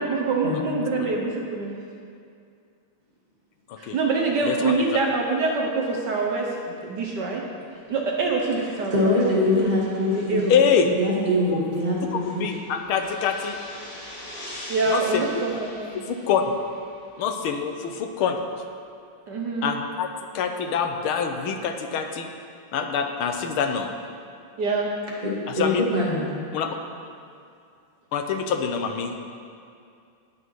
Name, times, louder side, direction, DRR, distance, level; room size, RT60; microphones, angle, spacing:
voice 1, 0.0-1.8 3.8-7.4 7.9-9.7 10.1-10.9 14.7-16.1 19.3-19.7 24.6-24.9, right 3 dB, 60° right, -1 dB, 1.5 m, -25 dB
sound 1, 7.7-17.3, equal, 45° left, 2.6 m, -44 dB
voice 2, 8.9-10.4 10.9-12.5 25.2-26.3, left 1 dB, 20° right, -7 dB, 2.6 m, -23 dB
voice 3, 10.5-10.9 12.1-13.6 14.9-15.2 16.1-16.4 17.2-18.4 19.6-20.1 20.3-22.3 22.7-23.9 25.5-25.8 26.5-26.8 28.1-29.2, left 7 dB, 85° left, 5 dB, 1.7 m, -25 dB
18.5 x 6.1 x 4.7 m, 2.4 s
omnidirectional pair, 2.3 m